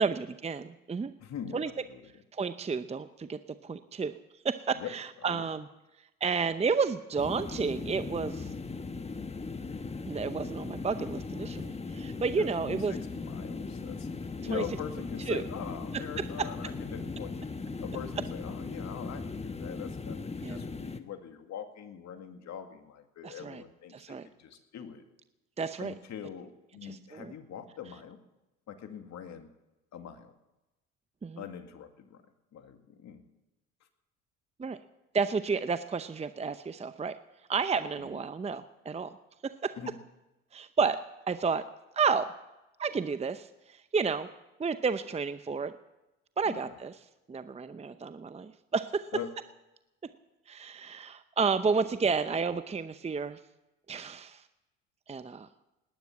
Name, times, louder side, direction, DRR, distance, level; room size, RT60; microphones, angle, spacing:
voice 1, 0.0-1.1 1.5-1.7 2.3-4.1 4.4-5.7 6.2-8.5 10.1-12.9 14.5-14.6 15.3-15.4 16.2-16.5 20.4-20.6 23.2-23.6 23.9-24.3 25.6-25.9 26.8-27.3 31.2-31.4 34.6-34.8 35.1-37.2 37.5-39.1 39.4-39.8 40.5-41.7 41.9-42.3 42.8-44.3 44.6-45.7 46.4-46.9 47.3-49.1 50.5-53.4 53.9-54.4 55.1-55.5, right 5 dB, 20° right, 12 dB, 0.7 m, -31 dB
voice 2, 1.2-2.0 4.7-4.9 5.2-5.5 12.3-25.1 25.8-28.2 28.7-29.5 29.9-30.3 31.4-32.2 32.5-33.2 38.0-38.2 39.8-39.9 46.4-46.8 49.1-49.3, left 8 dB, 55° left, 7 dB, 2.2 m, -43 dB
sound 1, 7.2-21.0, left 4 dB, 20° left, 1.2 m, -38 dB
19.0 x 10.5 x 7.2 m, 0.99 s
supercardioid pair, 70°, 33 cm